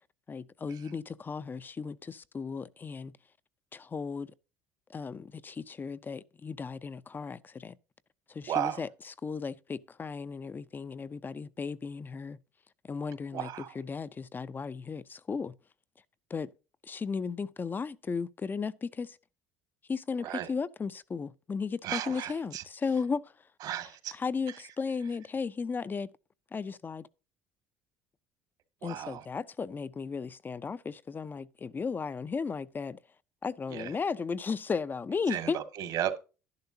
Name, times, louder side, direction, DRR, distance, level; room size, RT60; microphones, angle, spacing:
voice 1, 0.3-3.1 3.7-4.3 4.9-7.8 8.3-12.4 12.8-13.5 13.7-15.5 16.3-16.5 16.8-19.2 19.9-23.5 24.1-26.1 26.5-27.1 28.8-33.0 33.4-35.6, left 5 dB, 25° left, 0.6 m, -35 dB
voice 2, 8.5-8.8 13.3-13.7 20.2-20.5 21.8-22.6 23.6-24.1 28.8-29.2 33.7-33.9 35.3-36.2, right 11 dB, 65° right, 2.0 m, -34 dB
11.5 x 10.5 x 2.8 m
supercardioid pair, 95°, 7 cm